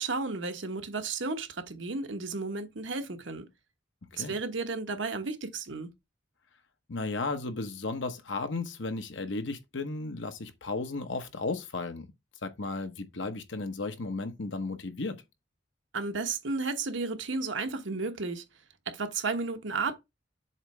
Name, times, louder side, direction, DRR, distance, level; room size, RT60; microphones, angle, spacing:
voice 1, 0.0-3.5 4.1-5.9 15.9-18.4 18.9-19.9, right 4 dB, 80° right, 1.1 m, -33 dB
voice 2, 6.9-12.1 12.4-15.2, left 3 dB, 75° left, 1.1 m, -34 dB
7.2 x 3.1 x 4.7 m
head